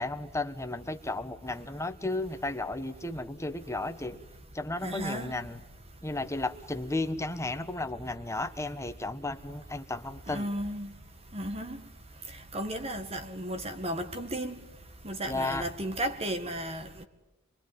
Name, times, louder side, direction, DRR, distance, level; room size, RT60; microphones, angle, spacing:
voice 1, 0.0-4.2 4.5-5.6 6.0-10.5 15.3-15.6, left 2 dB, 15° left, 1.3 m, -34 dB
voice 2, 4.8-5.3 10.3-10.9 11.3-11.8 12.5-14.6 15.0-17.0, right 1 dB, 30° right, 1.8 m, -34 dB
26.0 x 23.5 x 9.4 m
head